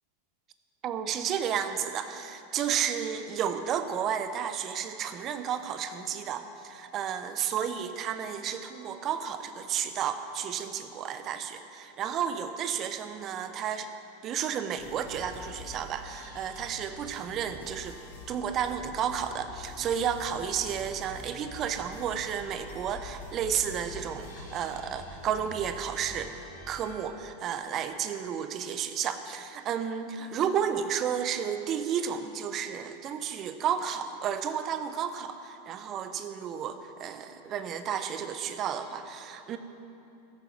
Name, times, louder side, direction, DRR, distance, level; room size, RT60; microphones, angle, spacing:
voice 1, 0.8-13.9 14.2-18.0 18.3-39.6, right 8 dB, 35° right, 9 dB, 0.9 m, -32 dB
sound 1, 14.8-27.0, left 2 dB, 60° left, 3.4 m, -46 dB
14.0 x 8.9 x 6.0 m, 2.9 s
figure-of-eight pair, 85°, 0 cm